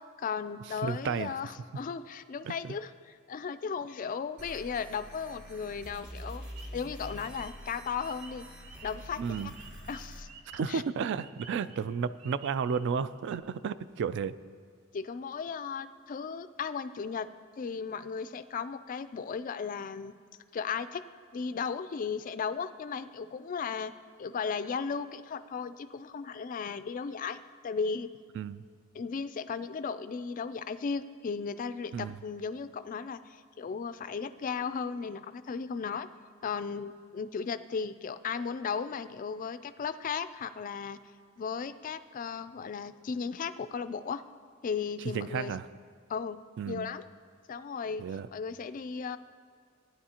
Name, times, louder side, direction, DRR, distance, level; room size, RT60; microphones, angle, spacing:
voice 1, 0.2-8.5 8.8-9.5 9.9-10.3 10.7-10.8 14.9-20.1 20.5-21.0 21.3-23.9 24.2-28.1 28.9-36.1 36.4-41.0 41.4-44.2 44.6-45.5 46.1-47.0 47.5-48.0 48.3-49.2, left 5 dB, 40° left, 12 dB, 0.3 m, -36 dB
voice 2, 0.8-1.3 2.4-2.7 9.2-9.5 10.5-14.3 28.3-28.6 31.9-32.2 45.1-45.7 46.6-46.9 48.0-48.3, right 6 dB, 55° right, 15 dB, 0.3 m, -32 dB
sound 1, 4.4-10.2, equal, 20° right, 2.1 m, -46 dB
sound 2, 6.5-13.0 13.3-13.4, right 5 dB, 80° right, 0.9 m, -52 dB
16.5 x 10.0 x 2.9 m, 2.1 s
head